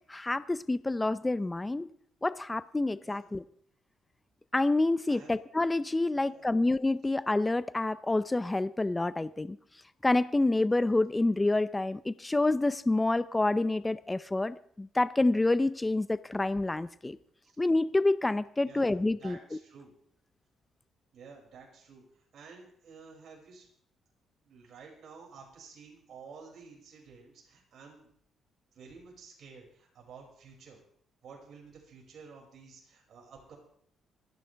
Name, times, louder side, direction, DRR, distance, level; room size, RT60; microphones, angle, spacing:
voice 1, 0.1-1.9 2.2-3.4 4.5-9.6 10.0-17.2 17.6-19.4, left 2 dB, 15° left, 15 dB, 0.6 m, -28 dB
voice 2, 6.1-6.5 17.4-17.5 18.6-19.9 21.1-23.7 24.4-28.1 28.7-30.8 31.2-33.6, right 5 dB, 60° right, -2 dB, 6.0 m, -52 dB
27.5 x 10.5 x 3.5 m, 0.64 s
cardioid pair, 90°, 0 cm